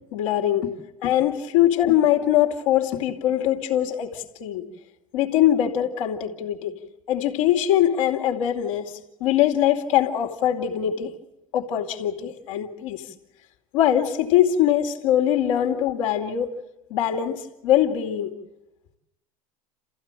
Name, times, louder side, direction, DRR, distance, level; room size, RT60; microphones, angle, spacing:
voice 1, 0.1-0.7 1.0-4.7 5.1-6.7 7.1-11.1 11.5-13.0 13.7-16.5 16.9-18.3, left 11 dB, 70° left, 2 dB, 2.6 m, -22 dB
29.0 x 15.0 x 9.0 m, 0.94 s
hypercardioid pair, 80°, 17 cm